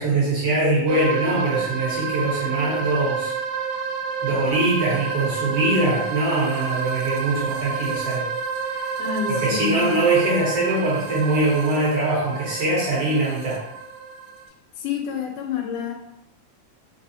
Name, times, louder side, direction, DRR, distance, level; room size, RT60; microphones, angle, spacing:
voice 1, 0.0-3.3 4.2-8.3 9.3-13.6, right 2 dB, 65° right, -5 dB, 1.5 m, -22 dB
sound 1, 0.9-14.5, right 5 dB, 85° right, 2.0 m, -29 dB
voice 2, 9.0-10.0 14.8-15.9, left 7 dB, 80° left, 1 dB, 2.2 m, -28 dB
4.9 x 3.4 x 2.7 m, 0.82 s
omnidirectional pair, 3.5 m